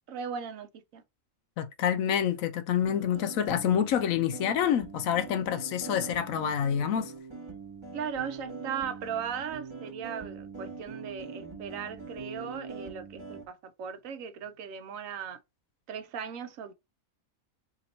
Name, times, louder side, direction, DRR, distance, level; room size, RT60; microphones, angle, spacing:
voice 1, 0.1-1.0 7.9-15.4 15.9-16.7, right 7 dB, 75° right, 1.0 m, -37 dB
voice 2, 1.6-7.1, left 9 dB, 75° left, 1.0 m, -27 dB
sound 1, 2.8-13.4, right 4 dB, 20° right, 1.1 m, -43 dB
2.9 x 2.8 x 4.0 m
omnidirectional pair, 1.5 m